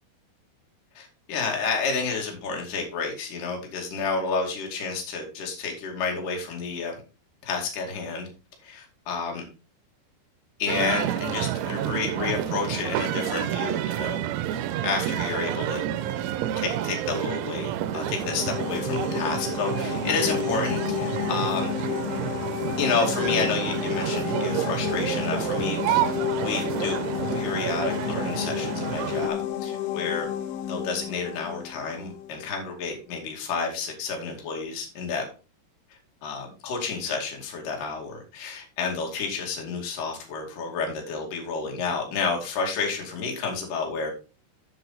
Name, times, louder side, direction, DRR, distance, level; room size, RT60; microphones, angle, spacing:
voice 1, 1.0-6.9 7.4-8.3 8.6-9.4 10.6-14.2 14.5-15.8 16.6-21.8 22.8-26.1 26.4-27.0 27.3-30.3 30.7-35.2 36.2-44.1, left 4 dB, 50° left, 1 dB, 3.5 m, -30 dB
sound 1, 10.7-29.3, right 12 dB, 85° right, 3.1 m, -29 dB
sound 2, 17.8-32.4, left 11 dB, 85° left, 3.2 m, -31 dB
8.1 x 7.8 x 4.1 m, 0.32 s
omnidirectional pair, 5.5 m